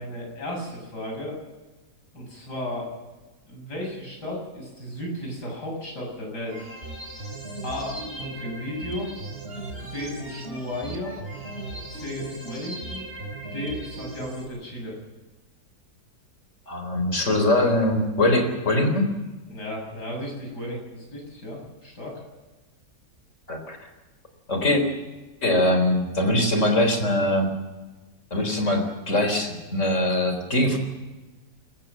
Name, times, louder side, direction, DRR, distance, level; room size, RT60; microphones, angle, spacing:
voice 1, 0.0-1.4 2.1-2.9 3.5-6.7 7.6-9.1 9.8-11.1 11.9-13.1 13.5-15.0 19.5-22.2, left 1 dB, 80° left, 0 dB, 8.0 m, -34 dB
sound 1, 6.4-14.4, right 2 dB, 40° right, 4.4 m, -37 dB
voice 2, 16.7-19.0 23.5-23.8 24.5-24.8 25.4-27.5 28.3-30.8, left 1 dB, 45° left, 6 dB, 4.3 m, -22 dB
27.0 x 14.5 x 7.5 m, 1.2 s
omnidirectional pair, 1.8 m